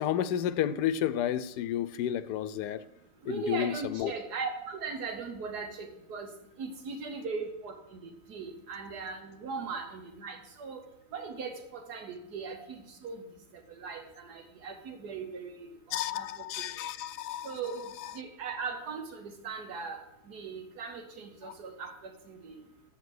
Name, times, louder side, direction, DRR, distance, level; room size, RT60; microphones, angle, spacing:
voice 1, 0.0-2.8 3.3-4.1 15.9-17.5 18.0-18.1 21.5-21.6, left 10 dB, 80° left, 14 dB, 1.2 m, -31 dB
voice 2, 3.2-6.3 6.6-10.8 11.1-13.3 13.7-16.3 17.4-17.8 18.1-22.6, right 4 dB, 75° right, 5 dB, 1.5 m, -39 dB
7.9 x 7.3 x 6.3 m, 0.86 s
omnidirectional pair, 1.7 m